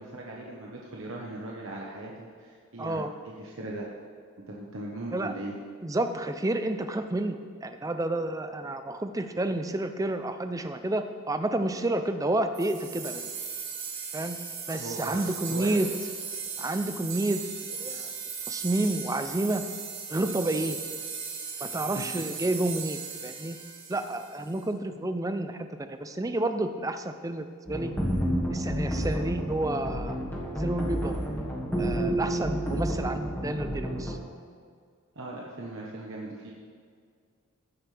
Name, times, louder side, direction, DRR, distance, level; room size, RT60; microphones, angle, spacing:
voice 1, 0.0-3.9 4.5-5.5 14.8-15.2 15.5-15.7 21.9-22.2 35.1-36.5, right 2 dB, 65° right, -3 dB, 1.2 m, -39 dB
voice 2, 2.8-3.1 5.1-5.3 5.8-13.3 14.1-14.4 14.7-15.9 16.6-18.1 18.5-19.7 20.1-20.8 21.6-23.6 23.9-27.9 28.5-30.2 30.6-31.1 31.8-34.2, right 2 dB, 15° right, 8 dB, 0.4 m, -30 dB
sound 1, 12.5-24.6, right 6 dB, 85° right, 2.1 m, -37 dB
sound 2, 27.7-34.1, right 1 dB, 10° left, 1.4 m, -30 dB
15.5 x 7.9 x 3.4 m, 2.1 s
head